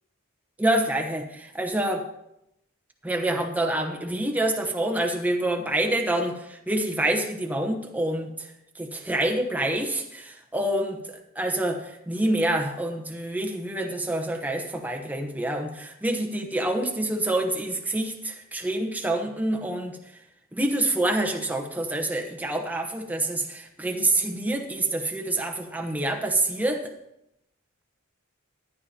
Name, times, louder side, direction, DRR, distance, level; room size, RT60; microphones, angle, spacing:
voice 1, 0.6-2.1 3.0-8.5 8.8-20.0 20.5-26.9, right 1 dB, 5° right, 2 dB, 1.0 m, -27 dB
15.0 x 11.0 x 2.9 m, 0.82 s
head